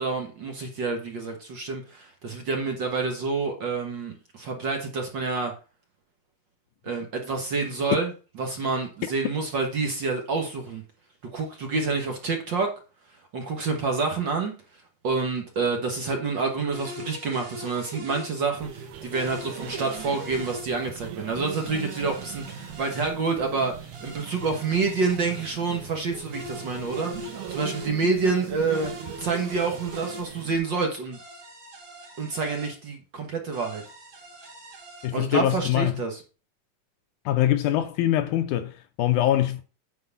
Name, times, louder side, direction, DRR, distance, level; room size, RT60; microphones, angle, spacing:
voice 1, 0.0-5.5 6.8-8.1 8.4-10.8 11.3-12.7 13.3-14.5 15.0-28.9 29.2-31.2 32.2-33.8 35.1-36.2, right 4 dB, 55° right, 1.3 m, -28 dB
sound 1, 16.7-18.3 19.1-20.7 21.5-23.1 23.9-25.5 26.3-27.9 28.7-30.2 31.1-32.7 33.5-35.1, equal, 40° right, 3.0 m, -41 dB
sound 2, 18.5-30.6, right 9 dB, 75° right, 2.5 m, -40 dB
voice 2, 35.0-35.9 37.3-39.6, left 12 dB, 80° left, 2.0 m, -23 dB
9.6 x 4.6 x 5.6 m
omnidirectional pair, 3.7 m